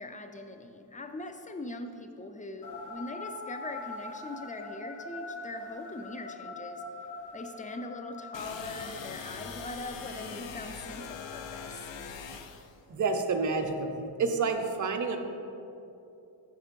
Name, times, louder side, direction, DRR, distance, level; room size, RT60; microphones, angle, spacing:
voice 1, 0.0-6.8 7.3-11.9, left 2 dB, 20° left, 6 dB, 0.3 m, -41 dB
sound 1, 2.6-12.1, left 2 dB, 40° left, 1.0 m, -44 dB
sound 2, 8.3-12.7, left 6 dB, 75° left, 0.5 m, -42 dB
voice 2, 12.9-15.2, right 4 dB, 40° right, 5 dB, 0.6 m, -29 dB
5.4 x 5.0 x 5.1 m, 2.8 s
wide cardioid pair, 105°, 45 cm